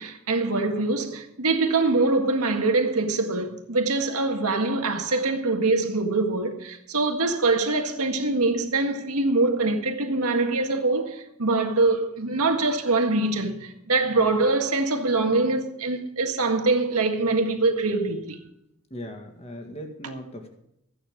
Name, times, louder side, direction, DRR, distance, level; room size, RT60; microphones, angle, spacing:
voice 1, 0.0-18.4, right 3 dB, 90° right, 1.8 m, -24 dB
voice 2, 18.9-20.5, equal, 30° left, 1.9 m, -38 dB
14.5 x 9.1 x 5.2 m
head